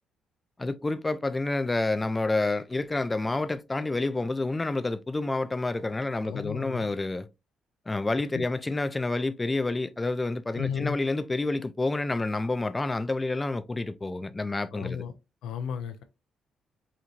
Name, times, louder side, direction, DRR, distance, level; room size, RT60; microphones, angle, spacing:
voice 1, 0.6-7.3 7.9-15.0, left 2 dB, 20° left, 0.4 m, -29 dB
voice 2, 6.2-6.9 8.3-8.4 10.5-11.0 14.7-15.1 15.4-16.0, left 7 dB, 85° left, 0.5 m, -34 dB
4.4 x 2.6 x 2.4 m
cardioid pair, 95°, 0 cm